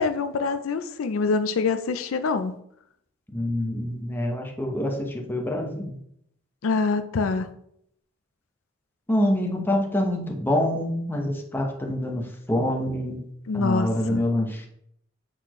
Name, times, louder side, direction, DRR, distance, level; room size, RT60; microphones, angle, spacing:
voice 1, 0.0-2.6 6.6-7.5 13.5-14.2, left 4 dB, 85° left, 10 dB, 0.4 m, -25 dB
voice 2, 3.3-6.0 9.1-13.2 13.5-14.7, left 1 dB, 10° left, 1 dB, 0.9 m, -26 dB
7.9 x 4.2 x 3.0 m, 0.71 s
head